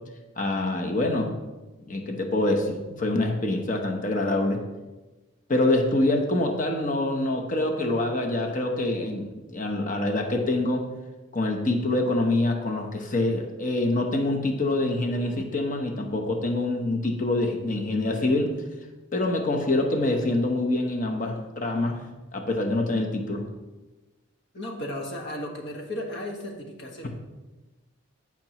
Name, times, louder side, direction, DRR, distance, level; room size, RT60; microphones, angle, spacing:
voice 1, 0.4-1.3 1.9-4.6 5.5-10.9 11.3-18.5 19.1-22.0 22.3-23.4, left 2 dB, 40° left, 2 dB, 1.0 m, -25 dB
voice 2, 24.5-27.1, left 1 dB, 55° left, 1 dB, 1.6 m, -35 dB
14.5 x 5.9 x 3.1 m, 1.1 s
head